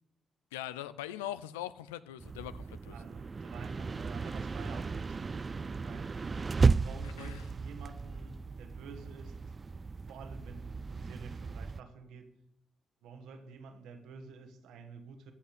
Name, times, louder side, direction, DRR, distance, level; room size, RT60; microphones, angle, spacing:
voice 1, 0.5-3.0 7.0-7.4, left 13 dB, 90° left, 0.4 m, -41 dB
sound 1, 2.2-11.8, right 4 dB, 40° right, 0.4 m, -34 dB
voice 2, 2.9-6.1 6.8-9.4 10.1-12.3 13.0-15.3, right 5 dB, 75° right, 1.6 m, -50 dB
15.0 x 5.8 x 8.4 m
hypercardioid pair, 40°, 0 cm